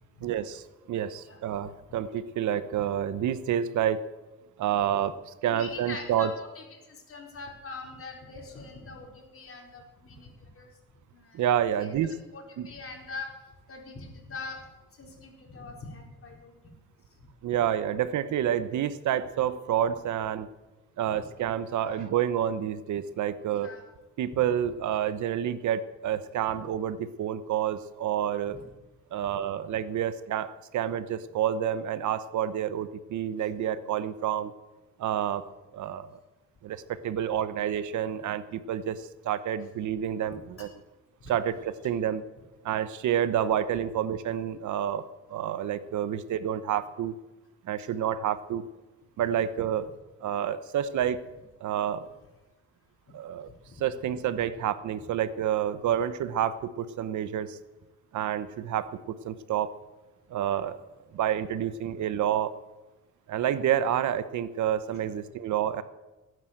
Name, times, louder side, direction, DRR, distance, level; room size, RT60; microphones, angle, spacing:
voice 1, 0.2-4.0 4.6-6.3 11.3-12.1 12.6-12.7 17.4-20.5 21.0-23.7 24.2-28.6 29.1-34.5 35.0-35.5 35.7-36.1 36.6-40.7 41.3-42.2 42.6-47.1 47.6-48.6 49.2-49.9 50.2-51.2 51.6-52.0 53.1-53.5 53.8-57.6 58.1-58.9 59.2-59.7 60.3-60.8 61.1-62.5 63.3-65.8, right 10 dB, 75° right, 14 dB, 1.0 m, -29 dB
voice 2, 5.5-10.7 11.1-11.4 11.8-13.3 13.7-14.6 15.0-16.5 21.0-21.2 21.8-22.0 23.5-23.9 28.5-28.6 40.6-40.7 47.8-47.9 53.1-53.2 53.7-53.8, left 3 dB, 45° left, 1 dB, 4.8 m, -43 dB
17.0 x 9.8 x 7.8 m, 1.1 s
cardioid pair, 90°, 30 cm